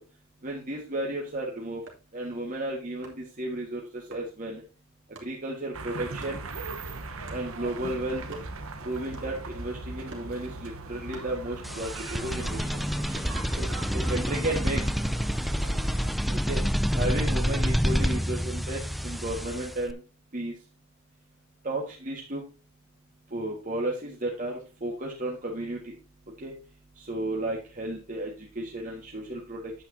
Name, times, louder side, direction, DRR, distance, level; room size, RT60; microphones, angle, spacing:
voice 1, 0.4-1.8 2.1-4.6 5.2-6.4 7.3-8.4 8.8-12.8 13.6-13.7 13.9-14.8 16.5-16.6 16.9-20.0 20.3-20.5 21.6-22.4 23.3-25.9 26.4-26.5 27.0-29.7, right 1 dB, 40° right, -2 dB, 1.7 m, -33 dB
sound 1, 1.9-2.2 3.0-3.4 4.1-4.3 5.2-5.4 6.2-6.4 7.3-7.5 7.9-8.8 9.1-9.5 10.1-10.4 11.1-11.9 12.2-13.6 14.7-15.1 16.3-17.0 17.9-18.2, right 3 dB, 60° right, 2.5 m, -49 dB
sound 2, 5.7-16.2, right 3 dB, 85° right, 1.1 m, -39 dB
sound 3, 11.6-19.9, equal, ahead, 0.3 m, -28 dB
9.1 x 8.7 x 2.7 m, 0.32 s
head